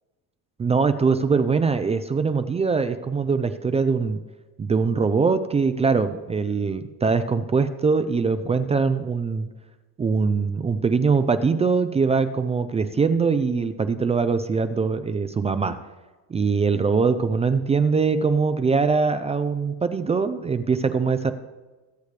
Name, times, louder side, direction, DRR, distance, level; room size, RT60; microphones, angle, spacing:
voice 1, 0.6-4.2 4.6-9.5 10.0-15.8 16.3-21.3, right 5 dB, 15° right, 10 dB, 0.4 m, -22 dB
22.5 x 8.2 x 3.3 m, 1.2 s
cardioid pair, 155°, 39 cm